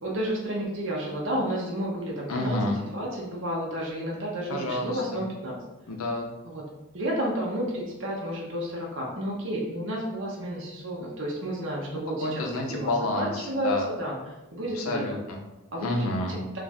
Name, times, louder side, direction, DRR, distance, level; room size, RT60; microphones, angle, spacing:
voice 1, 0.0-5.6 6.5-6.6 6.9-14.2 14.5-15.0 15.7-16.1, equal, 60° right, -3 dB, 0.7 m, -31 dB
voice 2, 2.3-2.8 4.5-5.0 5.9-6.3 12.2-13.9 14.8-15.4 15.8-16.4, left 1 dB, 85° left, 1 dB, 0.7 m, -29 dB
2.5 x 2.4 x 4.1 m, 1.0 s
head